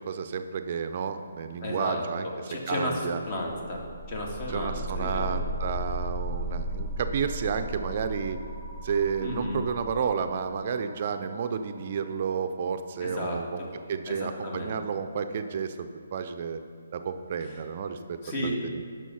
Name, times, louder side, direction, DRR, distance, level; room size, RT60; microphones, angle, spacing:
voice 1, 0.1-2.3 2.7-3.2 4.5-8.4 8.8-13.6 13.9-16.6 16.9-18.8, right 6 dB, 45° right, 8 dB, 0.5 m, -31 dB
voice 2, 1.6-5.4 9.2-9.6 13.0-13.7 14.1-14.8 17.4-17.6 18.2-18.6, left 1 dB, 35° left, -1 dB, 1.9 m, -33 dB
sound 1, 3.6-13.3, right 1 dB, 15° left, 1.8 m, -36 dB
10.0 x 6.3 x 5.5 m, 2.1 s
figure-of-eight pair, 140°, 0 cm